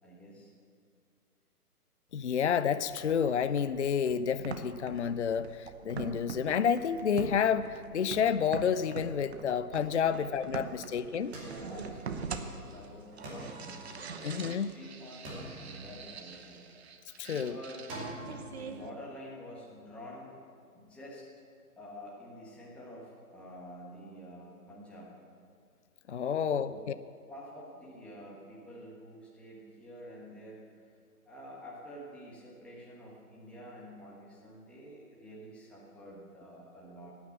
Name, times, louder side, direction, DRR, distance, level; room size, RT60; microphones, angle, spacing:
voice 1, 0.0-0.5 10.0-10.2 10.6-14.0 14.2-16.6 17.2-18.1 18.5-20.3 20.7-21.3 21.8-25.1 26.2-26.8 27.3-30.7 31.2-37.1, equal, 5° left, -5 dB, 1.4 m, -48 dB
voice 2, 2.1-11.3 14.2-14.7 17.2-17.6 26.1-26.7, left 7 dB, 50° left, 13 dB, 0.4 m, -30 dB
sound 1, 2.9-18.9, right 5 dB, 45° right, 1.0 m, -44 dB
sound 2, 11.3-12.5 13.2-14.7 15.2-16.6 17.9-18.4, right 1 dB, 20° right, 2.6 m, -45 dB
14.5 x 9.5 x 7.3 m, 2.3 s
figure-of-eight pair, 150°, 46 cm